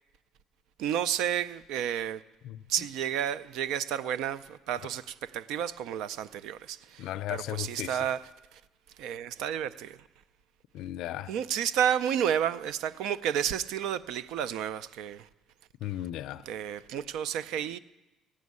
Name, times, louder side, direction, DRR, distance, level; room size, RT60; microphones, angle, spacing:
voice 1, 0.8-2.2 2.7-8.6 9.0-10.0 11.3-15.3 16.5-17.8, right 9 dB, 80° right, 0.4 m, -31 dB
voice 2, 2.4-2.9 7.0-8.0 10.7-11.3 15.8-16.4, left 13 dB, 75° left, 0.4 m, -36 dB
15.0 x 6.3 x 9.5 m
cardioid pair, 115°, 0 cm